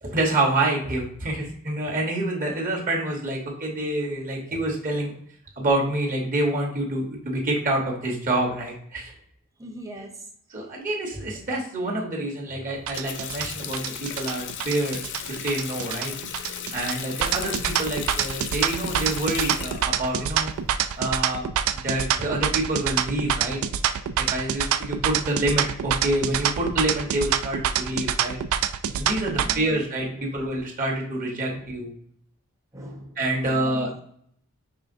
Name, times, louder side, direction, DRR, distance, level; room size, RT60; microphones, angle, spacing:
voice 1, 0.0-5.1 5.6-9.1 10.5-15.0 15.3-16.1 16.7-20.5 21.0-21.4 21.7-23.6 24.2-28.4 29.0-31.9 33.2-34.0, right 1 dB, 40° right, -1 dB, 1.0 m, -27 dB
voice 2, 9.6-10.2 17.3-17.4 29.3-29.7 30.1-30.3 31.5-31.7 32.7-33.8, equal, 15° right, 1 dB, 0.8 m, -41 dB
Water tap faucet, 12.7-21.2, left 9 dB, 55° left, 0.4 m, -36 dB
sound 1, 12.9-29.6, right 9 dB, 65° right, 0.3 m, -26 dB
5.5 x 3.3 x 2.5 m, 0.65 s
head